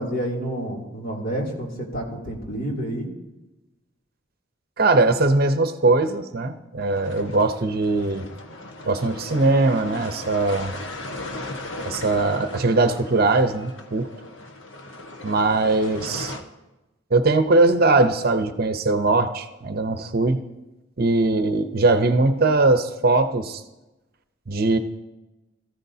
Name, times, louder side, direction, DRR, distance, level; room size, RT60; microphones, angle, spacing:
voice 1, 0.0-3.1, right 1 dB, 50° left, -2 dB, 3.0 m, -29 dB
voice 2, 4.8-8.3 8.8-10.7 11.8-14.1 15.2-16.3 17.1-20.4 21.0-23.6 24.5-24.8, right 3 dB, 50° right, 9 dB, 0.8 m, -20 dB
sound 1, 6.8-16.4, left 2 dB, 75° left, 1.4 m, -37 dB
20.5 x 14.5 x 2.8 m, 1.0 s
head